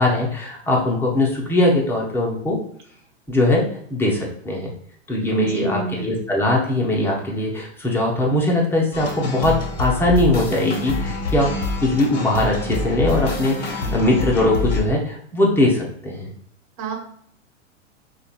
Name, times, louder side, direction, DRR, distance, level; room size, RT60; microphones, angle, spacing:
voice 1, 0.0-2.6 3.3-4.7 5.1-11.5 11.8-16.3, left 1 dB, 5° left, -2 dB, 0.7 m, -20 dB
voice 2, 5.3-6.0 16.8-16.9, right 3 dB, 40° right, -1 dB, 1.4 m, -27 dB
sound 1, 8.9-14.8, left 3 dB, 30° left, 1.4 m, -26 dB
5.1 x 2.3 x 2.4 m, 0.64 s
figure-of-eight pair, 110°, 37 cm